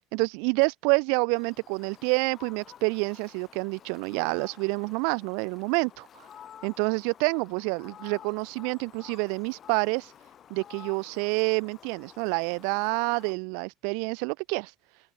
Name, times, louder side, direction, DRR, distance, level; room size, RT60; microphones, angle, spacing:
voice 1, 0.1-6.2 6.6-10.1 10.5-14.7, right 40 dB or more, 80° right, 0.3 m, -28 dB
Fowl, 1.3-13.3, left 9 dB, 30° left, 1.1 m, -51 dB
open air
cardioid pair, 170°, 0 cm